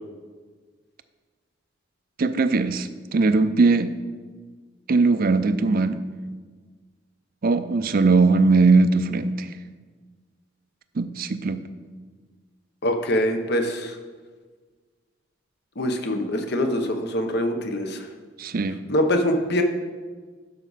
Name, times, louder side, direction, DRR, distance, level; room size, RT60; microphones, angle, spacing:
voice 1, 2.2-3.9 4.9-6.0 7.4-9.5 11.0-11.6 18.4-18.8, right 3 dB, 50° right, 11 dB, 0.5 m, -20 dB
voice 2, 12.8-14.0 15.8-18.1 18.9-19.6, left 1 dB, 55° left, 5 dB, 0.9 m, -24 dB
11.5 x 6.1 x 4.1 m, 1.5 s
head